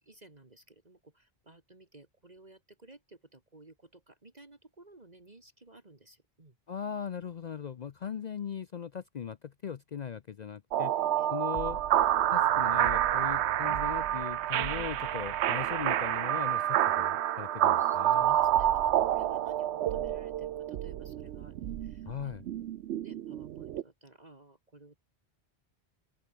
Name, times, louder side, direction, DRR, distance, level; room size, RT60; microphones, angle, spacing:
voice 1, 0.0-6.6 8.2-8.3 11.2-11.3 17.8-22.7 23.0-25.0, right 2 dB, 40° right, 2.3 m, -56 dB
voice 2, 6.7-10.9 11.3-11.8 12.3-18.4 22.1-22.4, left 7 dB, 50° left, 0.6 m, -39 dB
sound 1, 10.7-23.8, right 12 dB, 85° right, 0.9 m, -28 dB
omnidirectional pair, 1.1 m